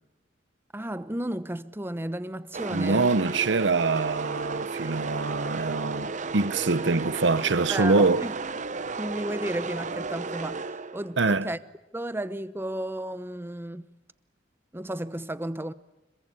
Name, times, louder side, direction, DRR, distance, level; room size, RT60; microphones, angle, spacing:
voice 1, 0.7-3.1 7.7-8.3 9.0-11.6 11.9-13.9 14.7-15.7, right 1 dB, 15° right, 0.9 m, -33 dB
sound 1, 2.5-11.2, right 4 dB, 45° right, 0.9 m, -34 dB
voice 2, 2.7-8.2 11.2-11.5, right 3 dB, 80° right, 0.9 m, -24 dB
26.5 x 22.0 x 9.6 m
head